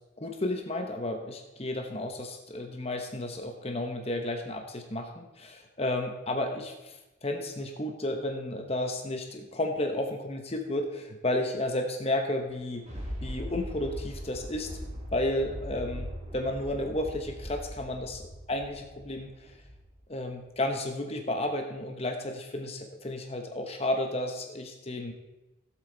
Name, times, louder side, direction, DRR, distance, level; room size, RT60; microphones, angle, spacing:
voice 1, 0.2-12.8 13.2-14.7 15.1-16.1 16.3-18.2 18.5-19.5 20.1-25.1, left 1 dB, 30° left, 4 dB, 1.0 m, -32 dB
Thunder, 12.5-20.0 20.5-20.6, equal, 35° right, 2.5 m, -40 dB
16.5 x 7.9 x 4.0 m, 1.0 s
head